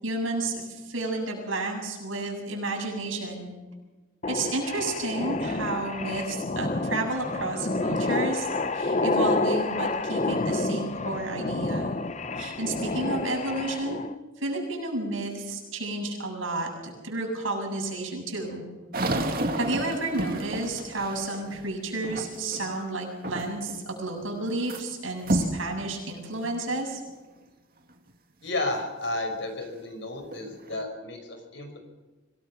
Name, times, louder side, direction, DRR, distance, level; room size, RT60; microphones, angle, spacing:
voice 1, 0.0-3.5 4.3-12.0 12.4-14.0 14.4-18.6 19.6-27.0, right 2 dB, 80° right, 1 dB, 7.6 m, -31 dB
sound 1, 4.2-14.1, left 2 dB, 35° left, 0.7 m, -29 dB
sound 2, 18.9-22.7 23.2-23.8 24.1-24.8 25.2-25.6 26.3-26.4 27.0-27.1 29.6-29.7 30.2-30.8, right 1 dB, 45° right, 2.3 m, -30 dB
voice 2, 28.4-31.8, left 2 dB, 60° left, 5 dB, 5.4 m, -32 dB
25.5 x 18.0 x 6.0 m, 1.2 s
head